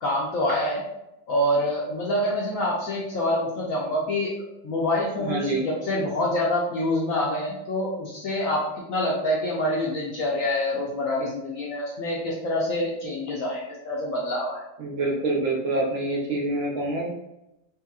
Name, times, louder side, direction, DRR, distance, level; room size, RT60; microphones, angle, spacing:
voice 1, 0.0-0.8 1.3-4.3 4.6-8.6 8.9-14.6, left 1 dB, 80° left, -4 dB, 0.7 m, -26 dB
voice 2, 5.2-5.7 14.8-17.1, right 2 dB, 70° right, -2 dB, 0.7 m, -26 dB
2.9 x 2.7 x 2.2 m, 0.89 s
omnidirectional pair, 2.0 m